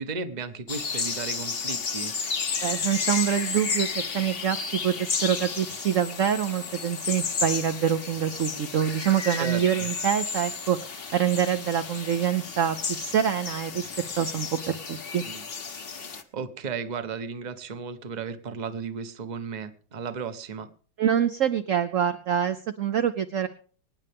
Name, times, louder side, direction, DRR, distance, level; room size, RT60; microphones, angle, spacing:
voice 1, 0.0-2.1 9.3-9.9 15.3-15.4 16.3-20.7, right 5 dB, 30° right, 10 dB, 0.8 m, -34 dB
sound 1, 0.7-16.2, left 5 dB, 40° left, 0.9 m, -32 dB
voice 2, 2.6-4.6 4.8-13.9 14.2-15.3 21.0-23.5, right 9 dB, 60° right, 8 dB, 0.8 m, -26 dB
24.0 x 9.7 x 3.5 m, 0.43 s
omnidirectional pair, 2.1 m